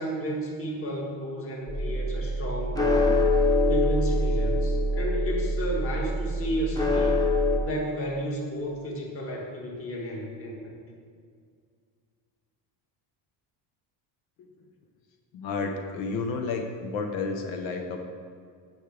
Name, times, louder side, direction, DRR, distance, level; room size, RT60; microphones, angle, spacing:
voice 1, 0.0-3.2 3.7-7.2 7.6-10.8, equal, 30° left, -2 dB, 1.7 m, -32 dB
sound 1, 1.7-7.6, left 1 dB, 10° left, 0.5 m, -24 dB
voice 2, 15.3-18.0, left 4 dB, 85° left, 3 dB, 1.0 m, -31 dB
15.0 x 6.4 x 3.4 m, 2.1 s
cardioid pair, 170°, 44 cm